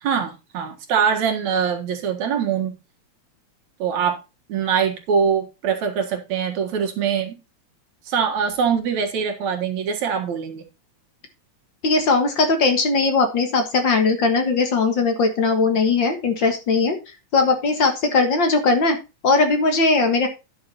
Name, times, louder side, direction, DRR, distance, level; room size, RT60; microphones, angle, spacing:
voice 1, 0.0-2.8 3.8-4.2 4.5-7.4 8.1-10.6, right 7 dB, 70° right, 4 dB, 2.9 m, -23 dB
voice 2, 11.8-17.0 17.3-19.0 19.2-20.3, left 3 dB, 45° left, 6 dB, 1.9 m, -19 dB
10.5 x 6.5 x 4.2 m, 0.28 s
omnidirectional pair, 3.3 m